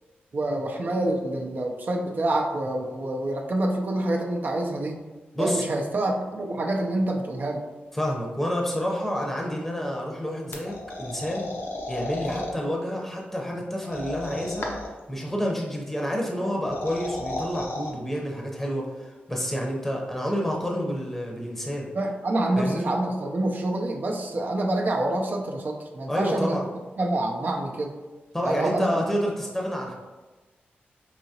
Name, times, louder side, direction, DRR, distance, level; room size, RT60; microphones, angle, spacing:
voice 1, 0.3-5.0 5.4-7.6 21.9-26.6 27.0-28.0 28.4-29.0, right 1 dB, 50° right, 1 dB, 0.5 m, -27 dB
voice 2, 5.3-5.7 7.9-11.5 11.9-14.7 15.1-21.9 22.6-22.9 26.1-26.6 28.3-29.9, equal, 5° left, -1 dB, 0.8 m, -29 dB
sound 1, 10.5-12.5 13.8-15.0 16.5-17.9, left 2 dB, 70° left, 0.7 m, -33 dB
4.8 x 2.8 x 2.8 m, 1.2 s
cardioid pair, 80°, 4 cm